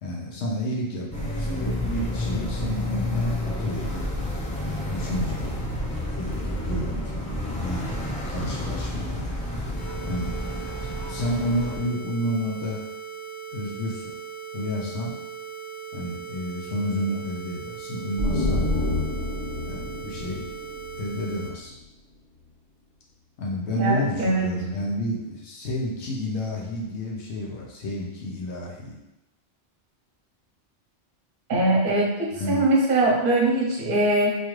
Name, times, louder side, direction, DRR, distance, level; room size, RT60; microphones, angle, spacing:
voice 1, 0.0-4.1 4.8-5.6 6.1-7.3 7.6-7.8 8.3-9.2 10.1-10.3 10.8-12.8 13.5-14.1 14.5-15.1 15.9-18.7 19.7-20.4 21.0-21.7 23.4-29.0 32.4-32.6, left 1 dB, 90° left, -3 dB, 1.0 m, -30 dB
sound 1, 1.1-11.8, left 1 dB, 5° left, 0.7 m, -30 dB
sound 2, 9.8-21.5, right 7 dB, 55° left, 0.7 m, -39 dB
sound 3, 18.2-21.8, left 2 dB, 70° left, 1.5 m, -28 dB
voice 2, 23.8-24.5 31.5-34.4, right 2 dB, 55° right, -1 dB, 0.9 m, -22 dB
4.4 x 2.4 x 3.1 m, 0.96 s
omnidirectional pair, 1.1 m